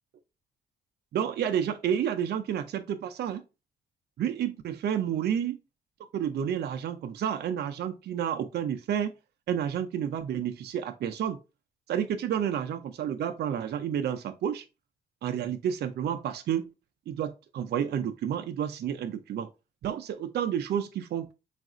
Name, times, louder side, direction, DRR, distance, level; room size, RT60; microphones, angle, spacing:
voice 1, 1.1-3.4 4.2-5.6 6.1-9.1 9.5-11.4 11.9-14.6 15.2-16.7 17.1-19.5 19.8-21.3, right 9 dB, 55° right, 0.4 m, -30 dB
3.9 x 2.4 x 3.6 m
cardioid pair, 90°, 20 cm